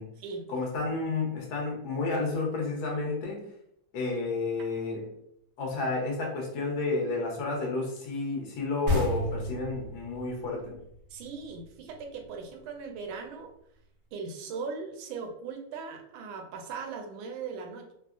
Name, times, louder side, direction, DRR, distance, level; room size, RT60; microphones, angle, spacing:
voice 1, 0.5-3.5 3.9-5.1 5.6-10.8, left 3 dB, 60° left, -2 dB, 1.1 m, -31 dB
sound 1, 8.9-12.3, left 1 dB, 60° right, 0.7 m, -32 dB
voice 2, 11.1-13.5 14.1-17.9, right 5 dB, 75° right, 3 dB, 1.3 m, -39 dB
3.5 x 2.0 x 2.4 m, 0.75 s
omnidirectional pair, 2.4 m